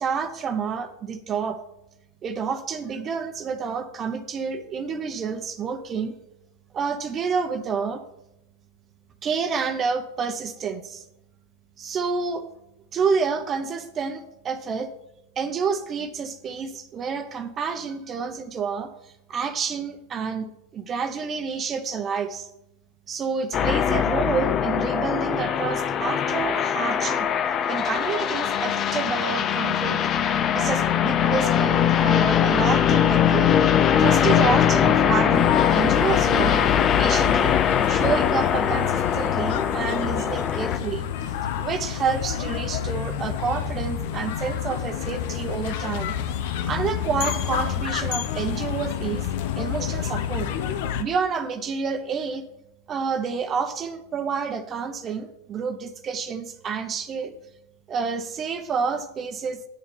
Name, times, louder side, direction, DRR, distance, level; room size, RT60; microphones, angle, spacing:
voice 1, 0.0-1.6 2.2-6.1 6.7-8.0 9.2-11.0 11.8-12.4 12.9-14.9 15.4-22.5 23.1-27.3 27.7-30.0 30.5-33.5 34.0-36.6 37.0-37.6 37.9-41.1 41.6-46.1 46.7-49.3 49.6-50.5 51.0-52.4 52.9-57.3 57.9-59.6, right 6 dB, 30° right, 8 dB, 1.0 m, -29 dB
sound 1, 23.5-40.8, left 9 dB, 35° left, 0.7 m, -21 dB
sound 2, 35.3-51.0, left 9 dB, 65° left, 0.9 m, -29 dB
9.9 x 7.1 x 5.4 m, 0.84 s
hypercardioid pair, 105°, 0 cm